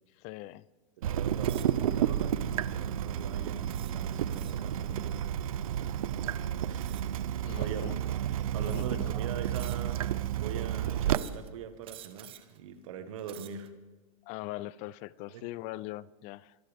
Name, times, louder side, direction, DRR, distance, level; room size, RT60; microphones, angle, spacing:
voice 1, 0.2-0.6 7.4-8.0 8.6-9.1 14.3-16.6, left 17 dB, 45° left, 0.5 m, -41 dB
voice 2, 1.0-5.3 5.6-5.9 6.7-7.1 7.6-7.9 8.5-10.1 10.3-13.7 15.3-15.5, right 7 dB, 70° right, 1.8 m, -42 dB
Water tap faucet / Drip, 1.0-11.2, right 10 dB, 90° right, 0.6 m, -31 dB
sound 1, 1.4-1.8 2.5-2.7 3.7-4.7 6.8-7.2 8.0-8.1 8.6-9.1 9.5-10.1 11.1-11.5 11.8-12.6 13.1-13.7, right 12 dB, 30° right, 1.0 m, -50 dB
24.5 x 12.5 x 3.6 m
supercardioid pair, 130°, 17 cm